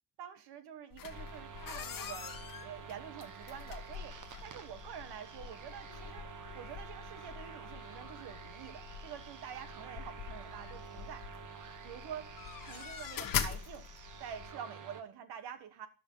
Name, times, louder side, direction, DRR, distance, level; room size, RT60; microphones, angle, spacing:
voice 1, 0.2-4.2 4.4-6.3 6.5-11.2 11.8-12.3 12.6-13.9 14.2-15.9, right 8 dB, 75° right, 10 dB, 1.3 m, -47 dB
sound 1, 0.9-14.5, left 9 dB, 55° left, 1.1 m, -44 dB
sound 2, 1.1-15.0, right 6 dB, 50° right, 1.3 m, -50 dB
10.5 x 6.9 x 3.7 m, 0.37 s
supercardioid pair, 70°, 40 cm